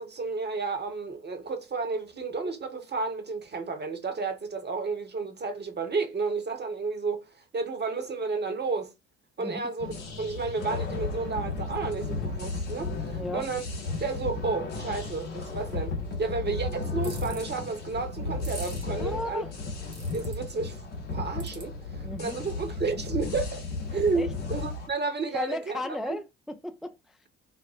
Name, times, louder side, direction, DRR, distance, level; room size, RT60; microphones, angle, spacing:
voice 1, 0.0-8.9 9.4-9.9 10.2-13.6 14.0-19.4 20.1-20.8 21.1-23.6 23.9-26.2, right 4 dB, 30° right, 1.1 m, -32 dB
sound 1, 9.8-24.9, left 3 dB, 80° left, 1.0 m, -34 dB
voice 2, 13.1-13.5 19.0-19.5 22.0-22.4 24.1-24.3 25.3-27.2, left 2 dB, ahead, 0.4 m, -35 dB
sound 2, 17.0-17.4 18.4-18.8 19.9-20.3 21.4-21.6, right 3 dB, 85° right, 1.2 m, -42 dB
5.2 x 2.1 x 2.9 m
hypercardioid pair, 50°, 35 cm